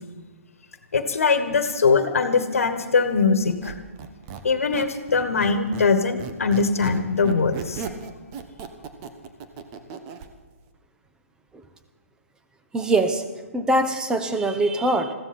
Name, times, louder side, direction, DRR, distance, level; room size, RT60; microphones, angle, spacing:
voice 1, 0.9-3.7 4.4-7.9, left 4 dB, 75° left, 9 dB, 1.5 m, -21 dB
Squeak, 3.4-5.9 6.2-10.3, right 6 dB, 30° right, 1.3 m, -37 dB
voice 2, 12.7-13.2 13.5-15.1, right 2 dB, 10° right, 8 dB, 1.1 m, -22 dB
21.5 x 15.0 x 4.3 m, 1.3 s
figure-of-eight pair, 130°, 8 cm